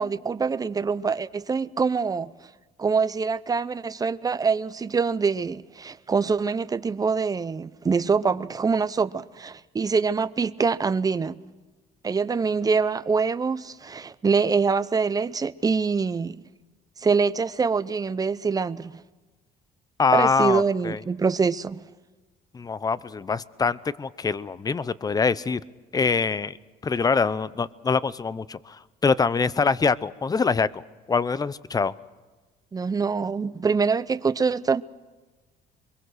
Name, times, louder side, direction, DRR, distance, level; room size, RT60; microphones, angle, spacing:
voice 1, 0.0-2.3 2.8-11.4 12.0-16.4 17.0-19.0 20.1-21.8 32.7-34.8, right 5 dB, 20° right, 0.7 m, -24 dB
voice 2, 20.0-21.0 22.5-25.6 25.9-26.6 26.8-30.8 31.1-31.9, left 5 dB, 20° left, 0.7 m, -24 dB
24.5 x 22.5 x 6.4 m
cardioid pair, 110°, 17 cm